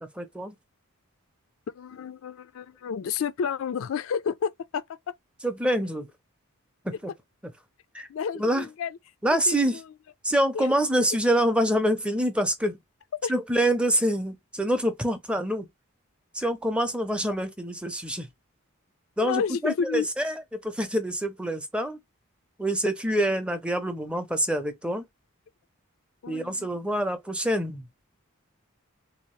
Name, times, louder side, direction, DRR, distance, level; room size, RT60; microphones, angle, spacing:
voice 1, 0.0-0.5 5.4-6.1 6.8-7.1 7.9-8.1 8.4-8.7 9.2-9.8 10.2-12.8 13.3-15.7 16.3-18.3 19.2-22.0 22.6-25.0 26.3-27.9, right 1 dB, 5° right, 0.5 m, -26 dB
voice 2, 1.7-4.8 8.1-8.9 9.5-9.8 10.5-10.7 11.0-11.1 13.2-13.3 19.2-20.1 26.2-26.7, left 6 dB, 65° left, 0.3 m, -30 dB
3.4 x 2.7 x 3.0 m
head